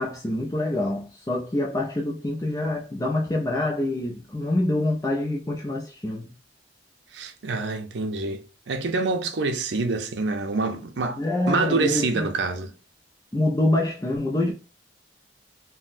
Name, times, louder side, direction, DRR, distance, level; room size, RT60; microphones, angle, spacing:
voice 1, 0.0-6.3 11.2-12.3 13.3-14.5, left 1 dB, 20° left, 0.4 m, -26 dB
voice 2, 7.1-12.7, right 3 dB, 80° right, 0.6 m, -26 dB
3.8 x 2.1 x 2.5 m
head